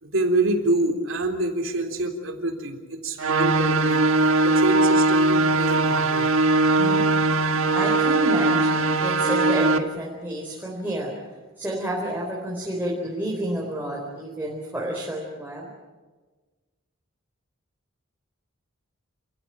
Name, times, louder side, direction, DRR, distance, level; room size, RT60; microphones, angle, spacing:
voice 1, 0.0-6.3 7.0-7.1, right 2 dB, 70° right, 4 dB, 3.5 m, -27 dB
sound 1, 3.2-9.8, right 2 dB, 90° right, 1.5 m, -20 dB
voice 2, 7.7-11.1 11.6-15.7, right 1 dB, 10° right, -4 dB, 4.1 m, -30 dB
28.0 x 15.5 x 8.9 m, 1.3 s
head